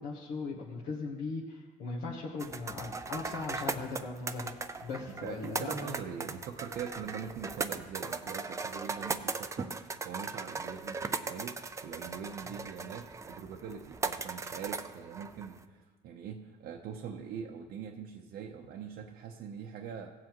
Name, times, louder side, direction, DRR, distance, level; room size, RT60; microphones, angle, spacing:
voice 1, 0.0-5.9 12.4-12.5, left 4 dB, 70° left, -4 dB, 1.2 m, -39 dB
sound 1, 2.4-15.6, right 4 dB, 15° right, 0.4 m, -38 dB
voice 2, 5.2-20.1, right 7 dB, 70° right, 1 dB, 0.7 m, -43 dB
16.5 x 7.5 x 3.0 m, 1.3 s
cardioid pair, 110°, 17 cm